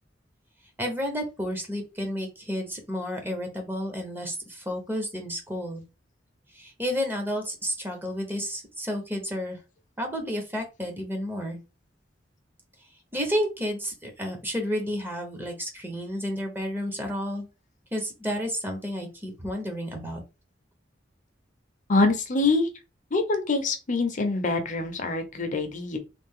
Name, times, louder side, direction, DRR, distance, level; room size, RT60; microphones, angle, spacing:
voice 1, 0.8-5.8 6.5-9.6 10.0-11.6 13.1-17.5 17.9-20.2, equal, 10° right, 0.8 m, -31 dB
voice 2, 21.9-22.7 23.1-26.0, left 3 dB, 45° left, 0.7 m, -25 dB
3.3 x 2.3 x 3.6 m
head